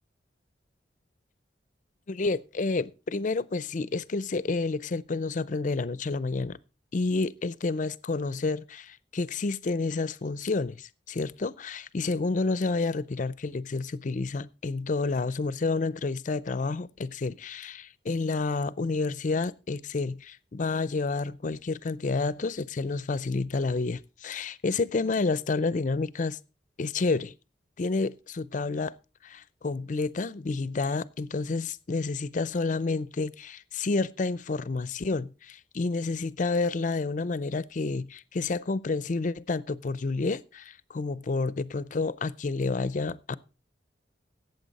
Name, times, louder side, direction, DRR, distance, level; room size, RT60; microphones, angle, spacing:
voice 1, 2.1-6.6 6.9-26.4 26.8-27.3 27.8-28.9 29.2-43.4, left 3 dB, 45° left, 0.5 m, -29 dB
14.5 x 8.3 x 4.1 m
head